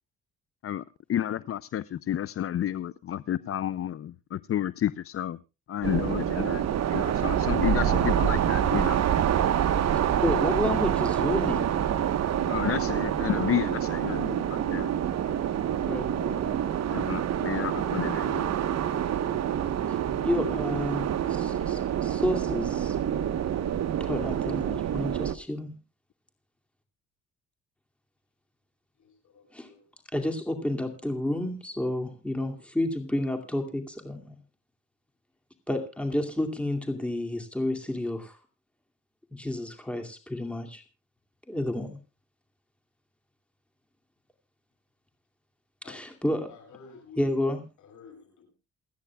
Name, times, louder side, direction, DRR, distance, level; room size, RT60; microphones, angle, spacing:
voice 1, 1.1-5.4 5.7-6.6 6.9-9.0 12.5-14.9 16.9-18.5, left 11 dB, 50° left, 0.5 m, -31 dB
sound 1, 5.8-25.4, right 10 dB, 60° right, 1.0 m, -27 dB
voice 2, 7.8-8.2 10.2-11.9 15.8-16.6 19.9-22.9 24.1-25.7 29.5-29.7 30.1-34.3 35.7-38.4 39.3-40.8 41.5-42.0 45.8-46.5 47.2-47.6, left 1 dB, 5° left, 2.5 m, -30 dB
voice 3, 22.2-23.0 29.0-29.8 45.8-46.0 46.3-47.3 47.8-48.5, left 6 dB, 75° left, 6.9 m, -50 dB
28.5 x 9.7 x 2.3 m
cardioid pair, 90°, 30 cm